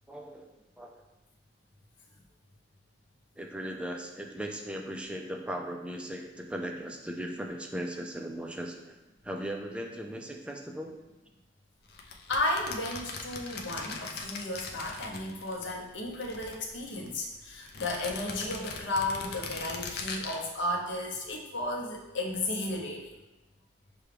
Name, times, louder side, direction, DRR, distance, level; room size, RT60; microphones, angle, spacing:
voice 1, 0.1-0.5 0.8-0.9 3.4-9.0 9.2-10.9, right 1 dB, 5° right, 2 dB, 0.3 m, -38 dB
sound 1, 11.9-15.7 16.0-17.1 17.6-20.4, left 4 dB, 55° left, 0.4 m, -40 dB
voice 2, 12.3-23.1, left 1 dB, 85° left, -1 dB, 0.7 m, -34 dB
5.8 x 2.3 x 3.3 m, 1.0 s
head